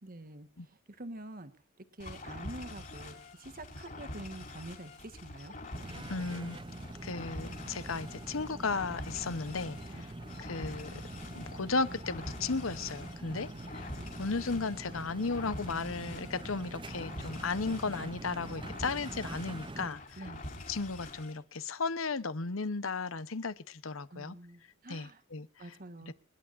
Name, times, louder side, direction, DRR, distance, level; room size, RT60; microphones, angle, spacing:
voice 1, 0.0-1.5 1.9-5.6 5.8-6.1 9.9-10.1 13.3-14.1 20.2-20.4 24.1-25.2 25.6-26.1, right 1 dB, 45° right, 1.5 m, -47 dB
sound 1, 2.0-21.4, left 2 dB, 40° left, 5.4 m, -46 dB
sound 2, 5.7-19.9, right 2 dB, 25° right, 0.7 m, -45 dB
voice 2, 6.1-6.6 7.0-10.0 10.4-11.0 11.3-13.5 14.2-20.0 20.7-24.4 24.9-25.5 26.1-26.2, left 4 dB, 80° left, 1.0 m, -35 dB
27.5 x 11.5 x 2.6 m
head